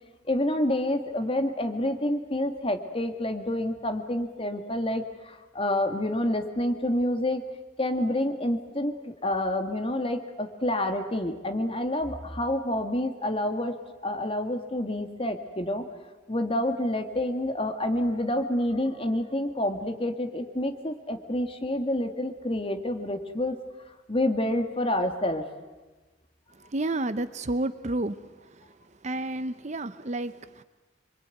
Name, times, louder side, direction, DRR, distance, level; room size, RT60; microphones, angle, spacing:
voice 1, 0.3-7.4 7.8-13.8 14.0-15.8 16.3-23.6 24.1-25.4, left 1 dB, 30° left, 6 dB, 2.1 m, -28 dB
voice 2, 26.6-28.2 28.4-28.6 29.0-30.6, right 2 dB, 40° right, 12 dB, 0.8 m, -31 dB
26.0 x 23.5 x 9.3 m, 1.2 s
head